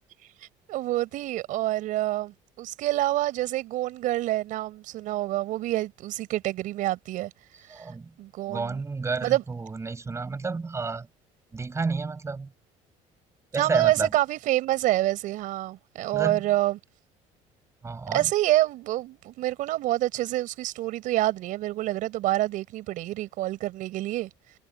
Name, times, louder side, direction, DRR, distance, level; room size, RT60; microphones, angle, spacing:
voice 1, 0.4-7.3 7.8-7.9 8.2-8.8 9.2-9.4 13.6-16.8 18.1-24.3, right 15 dB, 70° right, 6.4 m, -27 dB
voice 2, 7.7-8.1 8.5-11.1 11.5-12.5 13.5-14.1 16.1-16.4 17.8-18.3, right 4 dB, 20° right, 5.9 m, -30 dB
cardioid pair, 120°, 14 cm